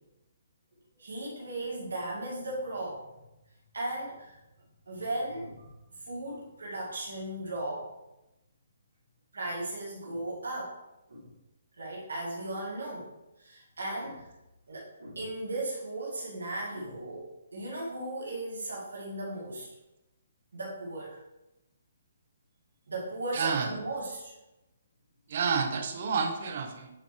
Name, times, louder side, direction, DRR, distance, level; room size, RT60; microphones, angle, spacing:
voice 1, 1.0-3.1 3.7-4.4 4.9-5.7 6.0-7.9 9.3-10.7 11.1-11.3 11.8-13.1 13.4-14.3 14.7-19.7 20.5-21.2 22.9-24.3, right 1 dB, 90° right, -4 dB, 1.9 m, -36 dB
voice 2, 23.3-23.7 25.3-26.9, right 5 dB, 50° right, 6 dB, 1.0 m, -29 dB
8.6 x 4.3 x 3.2 m, 0.96 s
hypercardioid pair, 150°, 0 cm